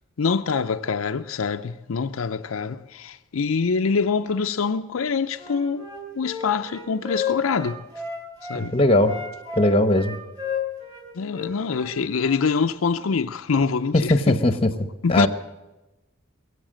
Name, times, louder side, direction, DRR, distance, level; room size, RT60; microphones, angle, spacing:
voice 1, 0.2-5.9 6.1-7.8 8.5-8.7 11.1-14.4 15.0-15.3, left 5 dB, 85° left, 0.5 m, -25 dB
Wind instrument woodwind instrument, 5.4-8.6 9.0-12.4, left 6 dB, 20° right, 3.5 m, -32 dB
voice 2, 8.5-9.1 9.6-10.2 13.9-14.7 15.1-15.3, left 1 dB, 25° left, 0.9 m, -19 dB
21.5 x 8.1 x 7.6 m
head